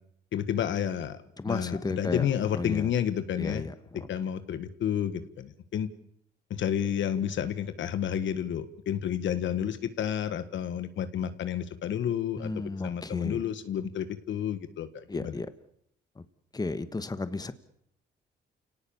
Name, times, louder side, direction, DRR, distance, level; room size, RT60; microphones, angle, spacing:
voice 1, 0.3-1.2 1.4-3.7 4.1-5.9 6.5-15.4, left 9 dB, 70° left, 11 dB, 1.7 m, -30 dB
voice 2, 1.4-2.3 2.6-2.9 3.4-3.7 12.4-13.4 15.1-15.5 16.2-16.3 16.5-17.5, left 3 dB, 20° left, 12 dB, 1.5 m, -33 dB
29.5 x 18.0 x 7.2 m, 0.72 s
cardioid pair, 90°, 20 cm